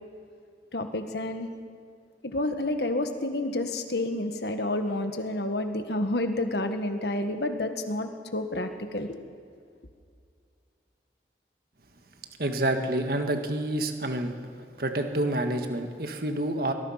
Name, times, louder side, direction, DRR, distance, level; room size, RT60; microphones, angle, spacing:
voice 1, 0.7-1.5 2.2-9.2, left 1 dB, 70° left, 7 dB, 1.7 m, -29 dB
voice 2, 12.4-14.3 14.8-16.7, right 1 dB, 55° right, 5 dB, 1.7 m, -28 dB
23.5 x 19.5 x 5.8 m, 2.3 s
head